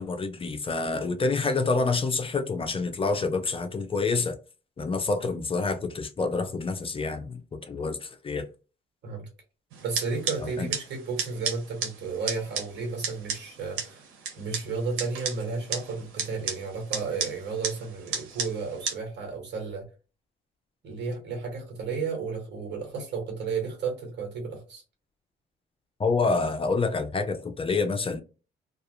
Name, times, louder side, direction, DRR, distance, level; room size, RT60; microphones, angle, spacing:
voice 1, 0.0-4.4 4.8-8.5 10.6-10.7 26.0-28.2, left 4 dB, 30° left, 0.5 m, -27 dB
sound 1, 9.7-18.9, right 6 dB, 85° right, 0.8 m, -35 dB
voice 2, 9.8-14.1 14.4-19.8 20.8-24.8, right 4 dB, 60° right, 1.3 m, -33 dB
2.3 x 2.2 x 2.9 m
cardioid pair, 90°, 20 cm